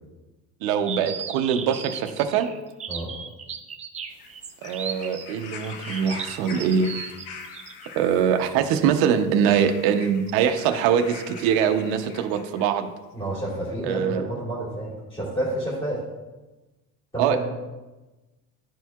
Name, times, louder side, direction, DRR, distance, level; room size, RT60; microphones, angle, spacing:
voice 1, 0.6-2.5 4.6-6.9 8.0-12.9 13.8-14.3 17.2-17.4, right 8 dB, 80° right, 6 dB, 0.7 m, -23 dB
sound 1, 0.9-7.9, right 7 dB, 20° right, 0.4 m, -36 dB
sound 2, 4.1-12.8 13.7-13.8, left 5 dB, 75° left, 0.9 m, -43 dB
voice 2, 13.1-16.0 17.1-17.4, right 1 dB, 15° left, -9 dB, 2.2 m, -29 dB
12.0 x 4.5 x 2.3 m, 1.1 s
cardioid pair, 150°, 36 cm